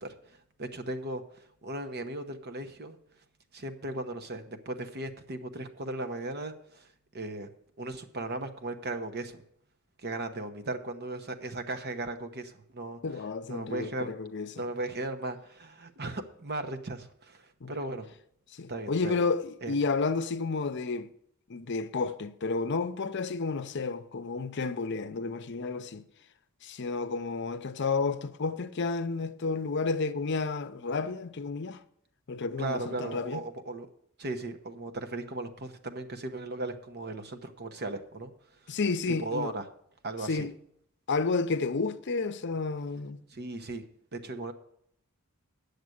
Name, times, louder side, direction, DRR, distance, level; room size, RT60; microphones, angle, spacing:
voice 1, 0.0-3.0 3.5-6.9 7.1-7.5 7.8-9.4 10.0-13.0 13.5-14.1 14.5-18.1 18.7-19.2 19.6-19.7 32.6-33.9 34.2-38.3 39.2-39.6 40.0-40.5 43.3-43.8 44.1-44.5, right 2 dB, 50° right, 1.0 m, -37 dB
voice 2, 13.0-14.6 17.6-17.7 18.5-21.1 21.5-26.0 26.6-31.8 32.3-33.4 38.7-39.5 40.2-40.5 41.1-43.2, left 4 dB, 55° left, 0.6 m, -31 dB
9.5 x 6.7 x 7.8 m
head